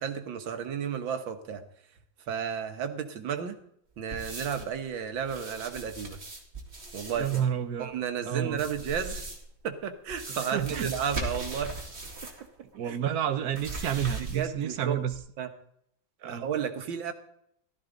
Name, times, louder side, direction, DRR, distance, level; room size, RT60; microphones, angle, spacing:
voice 1, 0.0-1.6 2.3-3.6 4.0-6.2 6.9-7.4 7.8-9.2 9.6-11.7 12.8-13.0 14.3-15.0 15.4-15.5 16.3-17.1, right 7 dB, 85° right, 7 dB, 2.0 m, -32 dB
sound 1, 4.1-4.8 5.2-7.4 8.5-9.5 10.1-12.5 12.7-12.8 13.5-14.6 15.1-15.2, right 2 dB, 35° right, 2.5 m, -39 dB
voice 2, 7.2-8.0 8.3-8.6 10.5-10.9 12.7-15.1 16.2-16.5, right 9 dB, 60° right, 10 dB, 1.2 m, -30 dB
15.0 x 13.0 x 3.9 m, 0.71 s
omnidirectional pair, 2.0 m